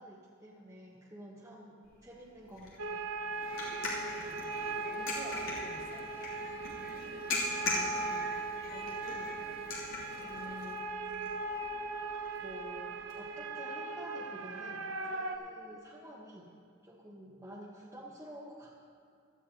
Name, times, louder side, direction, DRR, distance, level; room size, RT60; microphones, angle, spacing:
voice 1, 0.0-3.1 6.9-7.1 7.6-8.4 8.7-9.4 10.2-10.9 12.4-16.5 16.8-18.8, equal, 15° right, -6 dB, 1.1 m, -50 dB
sound 1, 1.8-13.1, left 2 dB, 75° left, 2.9 m, -42 dB
sound 2, 2.8-15.4, right 3 dB, 80° right, 0.8 m, -39 dB
sound 3, 3.2-10.9, left 3 dB, 45° left, 0.8 m, -51 dB
voice 2, 3.9-6.1, right 1 dB, 35° right, -2 dB, 1.6 m, -50 dB
16.5 x 13.0 x 2.9 m, 2.4 s
head